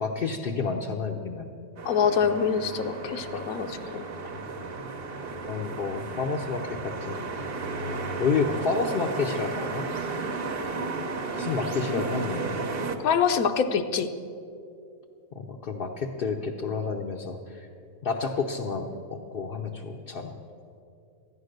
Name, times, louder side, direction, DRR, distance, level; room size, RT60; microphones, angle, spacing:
voice 1, 0.0-1.5 5.5-7.2 8.2-9.9 11.4-12.6 15.3-17.7 18.0-20.4, left 4 dB, 50° left, 0 dB, 0.7 m, -30 dB
voice 2, 1.8-4.0 11.9-12.0 13.0-14.1, left 6 dB, 80° left, 8 dB, 1.2 m, -25 dB
sound 1, 1.8-13.0, right 3 dB, 45° right, 1.0 m, -34 dB
13.0 x 9.8 x 6.5 m, 2.5 s
omnidirectional pair, 1.5 m